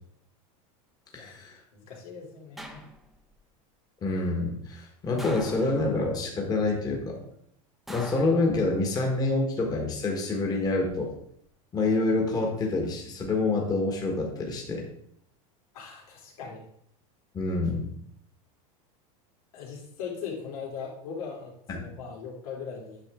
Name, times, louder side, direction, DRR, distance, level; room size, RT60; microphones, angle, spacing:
voice 1, 1.1-1.6 4.0-7.2 7.9-11.1 11.7-14.9 17.3-17.9 21.7-21.9, left 2 dB, 20° left, 1 dB, 1.4 m, -27 dB
voice 2, 1.7-2.8 15.7-16.6 19.5-23.0, left 6 dB, 90° left, -3 dB, 3.2 m, -39 dB
sound 1, 2.6-3.3 5.2-6.1 7.9-9.0 10.4-10.9, equal, ahead, 0.7 m, -43 dB
9.0 x 6.0 x 3.6 m, 0.71 s
supercardioid pair, 145°, 18 cm